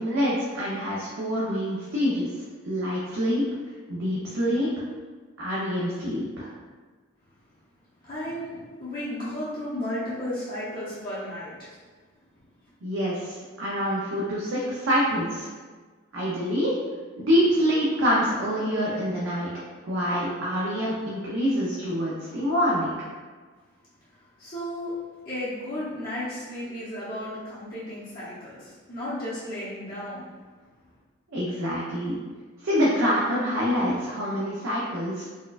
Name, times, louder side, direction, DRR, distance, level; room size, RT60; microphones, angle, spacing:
voice 1, 0.0-2.3 2.6-3.5 3.9-4.7 5.4-6.5 12.8-15.5 16.1-16.8 17.2-19.5 19.8-23.0 31.3-32.2 32.6-35.3, equal, 65° right, -7 dB, 0.6 m, -26 dB
voice 2, 8.0-11.8 24.4-25.0 25.3-30.3, left 1 dB, 40° left, -11 dB, 0.8 m, -34 dB
4.1 x 2.3 x 2.4 m, 1.4 s
head